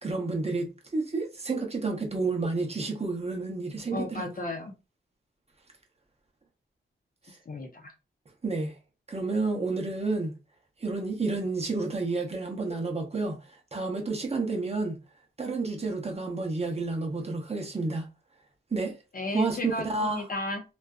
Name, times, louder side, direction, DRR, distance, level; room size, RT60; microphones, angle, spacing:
voice 1, 0.0-4.3 8.4-8.7 9.1-10.3 10.8-13.4 13.7-15.0 15.4-18.1 18.7-19.0 19.3-20.3, right 3 dB, 30° right, 0.7 m, -30 dB
voice 2, 3.9-4.7 7.5-7.9 19.1-20.6, left 2 dB, 45° left, 0.7 m, -34 dB
2.5 x 2.3 x 2.3 m
wide cardioid pair, 105°, 21 cm